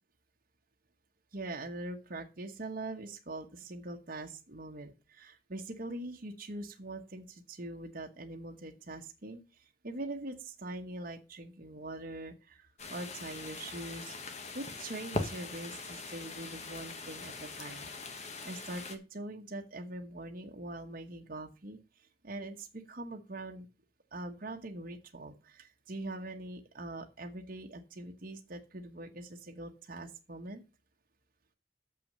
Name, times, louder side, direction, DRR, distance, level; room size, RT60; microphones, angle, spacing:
voice 1, 1.3-17.9 18.1-23.7 24.1-30.6, right 2 dB, 50° right, 2 dB, 1.1 m, -43 dB
sound 1, 12.8-19.0, left 3 dB, 35° left, 1.3 m, -41 dB
6.9 x 6.1 x 6.7 m, 0.30 s
head